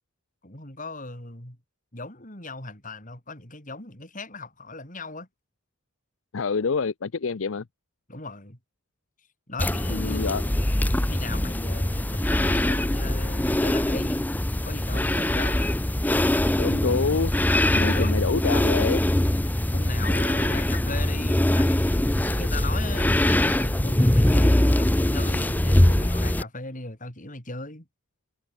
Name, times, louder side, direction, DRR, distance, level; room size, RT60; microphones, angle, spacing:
voice 1, 0.4-1.6 1.9-5.3 8.1-8.6 9.5-10.3 11.0-14.3 14.6-15.7 17.7-18.1 19.7-21.8 22.2-27.9, left 2 dB, 40° left, 5.8 m, -37 dB
voice 2, 6.3-7.6 9.9-10.4 16.6-17.3 17.7-19.0, left 5 dB, 65° left, 0.6 m, -27 dB
sound 1, 9.6-26.4, left 1 dB, 10° left, 0.5 m, -22 dB
head